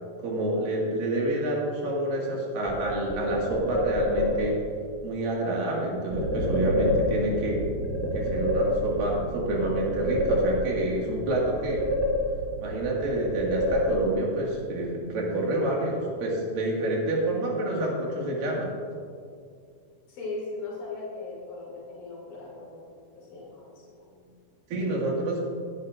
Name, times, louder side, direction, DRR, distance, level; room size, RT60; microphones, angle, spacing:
voice 1, 0.2-4.6 5.0-7.6 8.1-11.9 12.6-18.7 24.7-25.5, right 1 dB, 90° right, -3 dB, 3.7 m, -28 dB
sound 1, 2.7-4.6 6.1-7.5 7.8-9.2 9.5-10.9 11.2-12.6 12.9-14.3, left 1 dB, 10° left, 0.5 m, -28 dB
sound 2, 6.1-13.2, left 1 dB, 35° right, 3.8 m, -36 dB
voice 2, 20.1-24.3, left 3 dB, 90° left, -5 dB, 4.2 m, -39 dB
20.0 x 9.7 x 2.5 m, 2.3 s
omnidirectional pair, 3.9 m